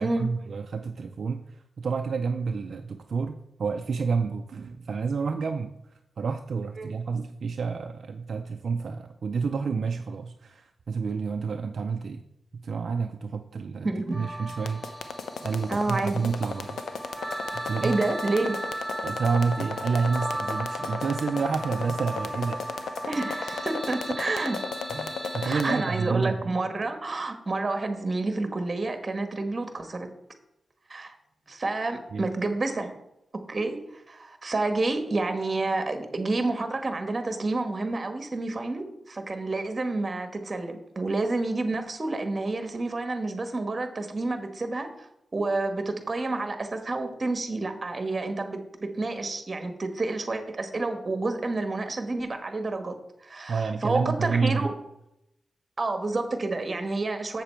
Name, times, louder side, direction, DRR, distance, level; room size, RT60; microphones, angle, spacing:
voice 1, 0.0-5.7 6.2-12.2 12.5-14.8 15.4-16.8 17.1-18.0 19.0-22.6 24.9-26.6 32.1-32.3 53.5-54.7, right 5 dB, 70° right, 6 dB, 0.4 m, -29 dB
voice 2, 13.8-14.2 15.7-16.2 17.8-18.6 23.0-24.6 25.4-30.1 30.9-31.2 31.5-32.9 33.5-33.8 34.1-44.9 45.3-52.9 53.2-54.7 55.8-57.4, right 2 dB, 40° right, 7 dB, 1.3 m, -29 dB
sound 1, 14.1-26.1, right 1 dB, 10° right, 0.4 m, -36 dB
sound 2, 14.5-25.8, left 6 dB, 85° left, 0.7 m, -35 dB
7.5 x 7.0 x 4.4 m, 0.83 s
cardioid pair, 70°, 0 cm